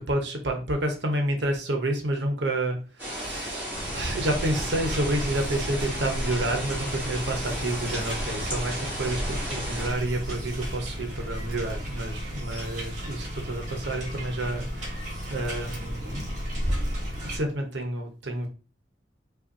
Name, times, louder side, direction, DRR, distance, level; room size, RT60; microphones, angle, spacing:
voice 1, 0.0-15.0 15.3-16.3 17.2-18.5, right 1 dB, 70° right, 4 dB, 0.8 m, -29 dB
sound 1, 3.0-9.9, equal, 10° right, 1.6 m, -34 dB
sound 2, 3.7-17.4, equal, 40° right, 1.3 m, -33 dB
5.0 x 2.4 x 2.7 m, 0.34 s
head